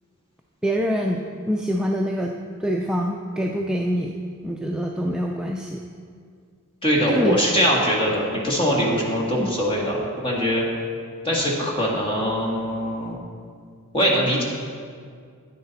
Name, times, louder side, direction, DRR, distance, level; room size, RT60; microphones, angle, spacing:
voice 1, 0.6-4.1 4.4-5.8 7.1-7.4 9.4-9.5, equal, 5° right, 0 dB, 0.3 m, -25 dB
voice 2, 6.8-10.6 11.2-13.2 13.9-14.4, equal, 25° left, -3 dB, 1.7 m, -22 dB
10.0 x 9.5 x 4.1 m, 2.1 s
head